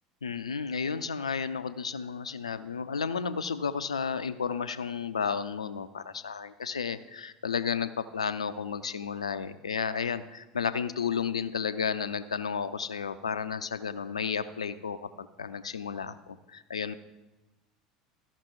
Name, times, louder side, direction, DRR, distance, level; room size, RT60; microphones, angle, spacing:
voice 1, 0.2-16.9, left 6 dB, 80° left, 12 dB, 0.4 m, -32 dB
13.5 x 5.9 x 4.6 m, 1.1 s
figure-of-eight pair, 70°, 3 cm